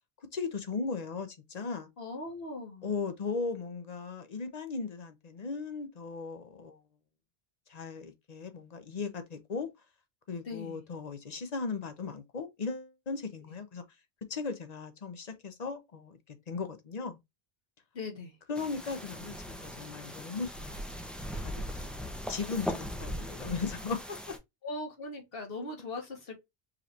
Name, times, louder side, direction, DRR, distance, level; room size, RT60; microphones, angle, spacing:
voice 1, 0.3-1.9 2.8-6.8 7.7-9.7 10.3-13.8 14.3-16.2 16.5-17.2 18.5-20.7 21.4-24.4, left 4 dB, 45° left, 0.8 m, -37 dB
voice 2, 2.0-2.9 10.4-10.8 17.9-18.3 24.6-26.4, left 2 dB, 70° left, 1.5 m, -39 dB
sound 1, 18.5-24.4, equal, ahead, 0.5 m, -39 dB
5.0 x 3.2 x 2.7 m
omnidirectional pair, 1.0 m